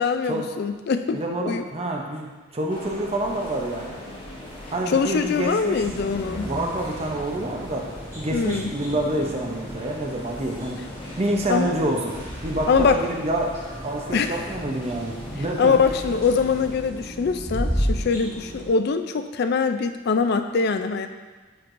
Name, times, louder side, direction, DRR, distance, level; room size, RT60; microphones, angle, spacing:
voice 1, 0.0-1.6 4.9-6.5 8.3-8.7 11.5-11.7 12.7-13.0 14.1-14.4 15.6-21.1, left 5 dB, 50° left, 9 dB, 0.3 m, -23 dB
voice 2, 1.1-4.0 4.7-5.9 6.4-7.9 8.2-10.8 11.2-13.5 13.8-15.8, right 1 dB, 30° right, 0 dB, 0.6 m, -27 dB
sound 1, 2.7-16.7, left 1 dB, 25° left, 1.0 m, -40 dB
sound 2, 5.7-18.7, equal, 15° right, 1.5 m, -34 dB
9.3 x 4.5 x 2.6 m, 1.4 s
head